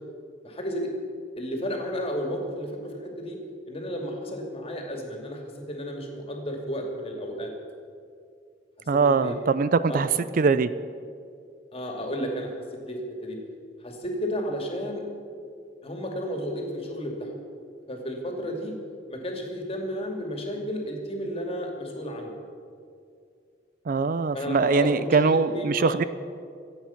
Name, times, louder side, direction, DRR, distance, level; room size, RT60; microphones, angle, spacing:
voice 1, 0.4-0.9 1.4-3.4 3.7-5.4 5.7-7.5 9.0-9.3 9.9-10.2 11.7-12.5 12.9-13.4 13.8-15.0 15.8-17.3 17.9-18.7 19.1-22.3 24.3-26.0, equal, 35° left, 2 dB, 2.5 m, -32 dB
voice 2, 8.9-10.1 10.4-10.7 23.9-26.0, right 4 dB, 50° right, 14 dB, 0.4 m, -22 dB
24.5 x 8.6 x 5.8 m, 2.3 s
head